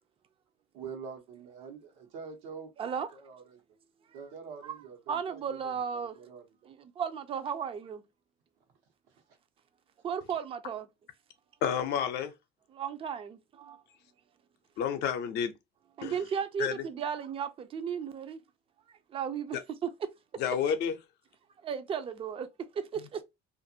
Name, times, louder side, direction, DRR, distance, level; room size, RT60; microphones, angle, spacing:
voice 1, 0.7-2.7 3.1-3.6 4.1-6.4, right 6 dB, 85° right, 1.0 m, -45 dB
voice 2, 2.8-3.1 4.1-4.2 4.6-6.2 6.6-8.0 10.0-10.9 12.7-13.8 16.0-18.4 18.9-20.1 21.6-22.5 22.7-23.2, right 7 dB, 30° right, 0.4 m, -35 dB
voice 3, 11.6-12.3 14.8-15.5 16.0-16.1 16.6-16.8 20.4-21.0, left 8 dB, 60° left, 0.6 m, -30 dB
2.5 x 2.5 x 2.7 m
cardioid pair, 125°, 20 cm